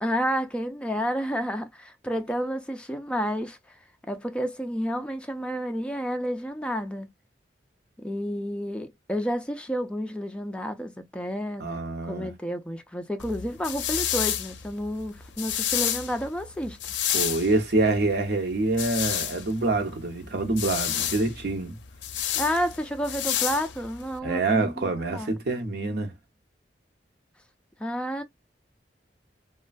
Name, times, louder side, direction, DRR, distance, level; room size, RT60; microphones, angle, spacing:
voice 1, 0.0-3.6 4.1-7.1 8.0-16.8 22.4-25.3 27.8-28.2, equal, 5° left, 0.4 m, -30 dB
voice 2, 11.6-12.3 17.1-21.7 24.2-26.1, right 2 dB, 65° right, 0.8 m, -26 dB
sound 1, 13.2-24.2, left 10 dB, 85° left, 0.4 m, -30 dB
3.1 x 2.2 x 2.4 m
head